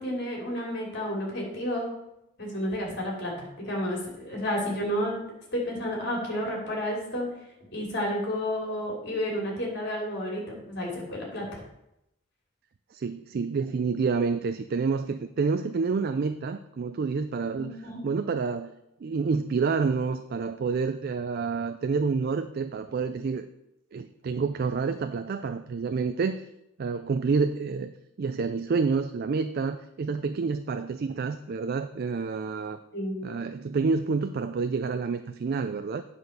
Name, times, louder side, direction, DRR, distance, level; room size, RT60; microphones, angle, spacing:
voice 1, 0.0-1.9 2.4-5.2 5.5-7.3 7.7-11.6 17.6-18.0 32.9-33.3, equal, 55° left, -2 dB, 2.9 m, -31 dB
voice 2, 12.9-17.7 18.0-18.7 19.0-23.4 23.9-26.4 26.8-27.9 28.2-32.8 33.2-36.0, right 4 dB, 50° right, 9 dB, 0.3 m, -28 dB
9.2 x 4.2 x 6.4 m, 0.85 s
head